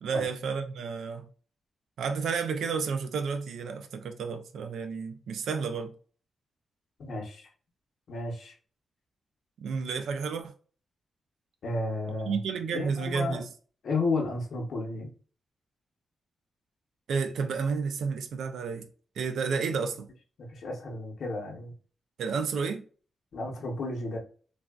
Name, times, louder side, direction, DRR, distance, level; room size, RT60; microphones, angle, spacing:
voice 1, 0.0-1.3 2.0-5.9 9.6-10.5 12.3-13.5 17.1-18.9 19.2-20.1 22.2-22.8, right 5 dB, 85° right, 0.4 m, -31 dB
voice 2, 7.0-7.5 8.1-8.5 11.6-12.4 12.7-13.4 13.8-15.1 20.4-21.7 23.3-24.2, left 2 dB, 65° left, 0.9 m, -32 dB
3.3 x 2.4 x 2.3 m
wide cardioid pair, 140°, 0 cm